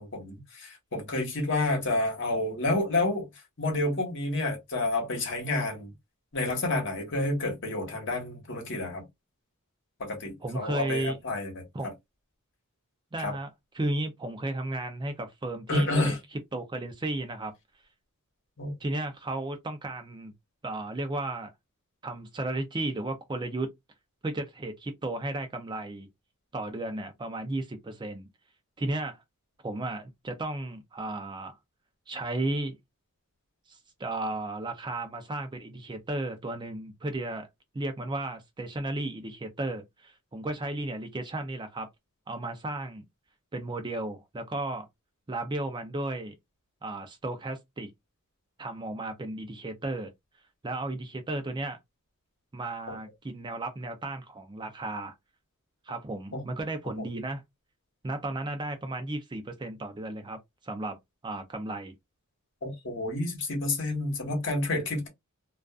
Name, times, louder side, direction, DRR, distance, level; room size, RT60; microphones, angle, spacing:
voice 1, 0.0-3.3 3.6-5.9 6.3-9.0 10.0-11.6 13.2-13.3 15.7-16.2 18.6-18.7 56.3-56.4 62.6-65.1, left 2 dB, 55° left, 1.2 m, -29 dB
voice 2, 10.4-11.2 11.7-11.9 13.1-13.5 13.7-17.5 18.8-20.3 20.6-21.5 22.0-23.7 24.2-26.1 26.5-28.3 28.8-29.2 29.6-31.5 32.1-32.8 33.7-37.5 37.7-41.9 42.3-43.0 43.5-44.9 45.3-46.3 46.8-47.9 48.6-50.1 50.6-51.8 52.5-55.1 55.9-57.4 58.0-61.0 61.2-61.9, right 2 dB, 20° right, 0.4 m, -34 dB
2.3 x 2.3 x 2.3 m
head